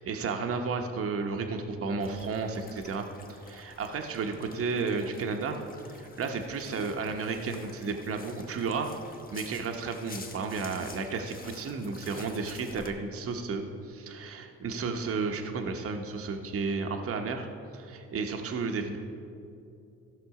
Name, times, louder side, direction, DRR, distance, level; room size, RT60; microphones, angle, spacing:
voice 1, 0.0-5.6 6.0-17.5 17.7-19.0, right 4 dB, 50° right, 4 dB, 0.9 m, -33 dB
sound 1, 2.0-12.9, left 3 dB, 30° left, 1.0 m, -49 dB
14.5 x 6.0 x 4.8 m, 2.7 s
cardioid pair, 90°, 30 cm